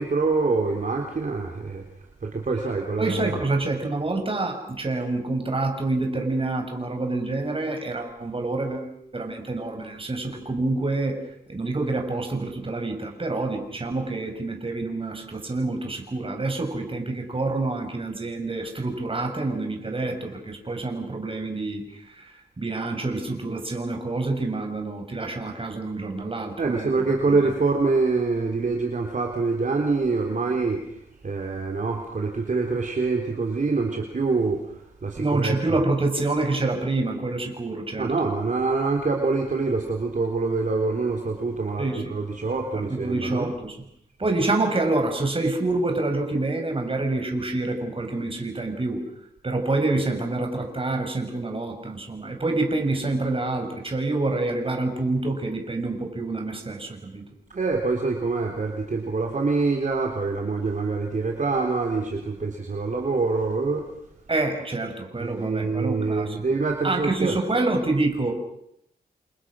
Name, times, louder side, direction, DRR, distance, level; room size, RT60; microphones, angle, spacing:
voice 1, 0.0-1.8 2.2-3.4 26.6-31.0 31.2-35.8 38.0-43.5 57.5-63.9 65.2-67.4, right 3 dB, 50° right, 2 dB, 3.8 m, -25 dB
voice 2, 3.0-11.2 11.5-27.3 35.2-38.1 41.8-42.2 42.7-43.8 44.2-49.0 49.4-57.2 64.3-66.4 66.8-68.3, right 2 dB, 30° right, 4 dB, 6.5 m, -27 dB
29.5 x 28.0 x 6.4 m, 0.77 s
wide cardioid pair, 90°, 17 cm